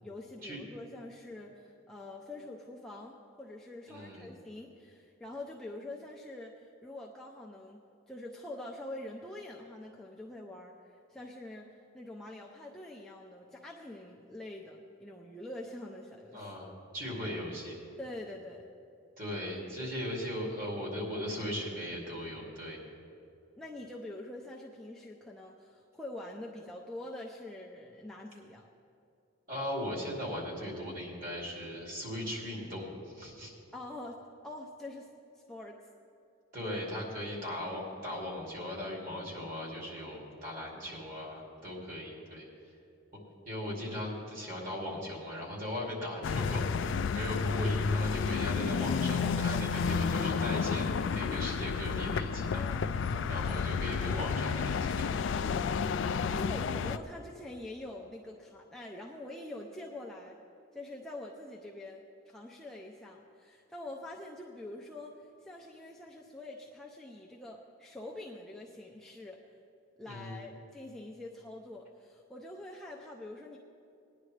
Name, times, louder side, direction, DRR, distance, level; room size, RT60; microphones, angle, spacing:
voice 1, 0.0-16.5 18.0-18.7 23.6-28.7 33.7-35.1 35.3-35.8 52.5-53.5 55.8-60.4 60.7-69.4 70.0-73.6, left 1 dB, ahead, -3 dB, 0.6 m, -45 dB
voice 2, 3.9-4.3 16.3-17.8 19.2-22.8 29.5-33.5 36.5-42.5 43.5-52.6 53.3-55.1 70.0-70.4, left 1 dB, 40° right, -3 dB, 2.9 m, -38 dB
sound 1, 46.2-57.0, left 5 dB, 55° left, 0.3 m, -31 dB
19.5 x 10.5 x 3.3 m, 2.7 s
head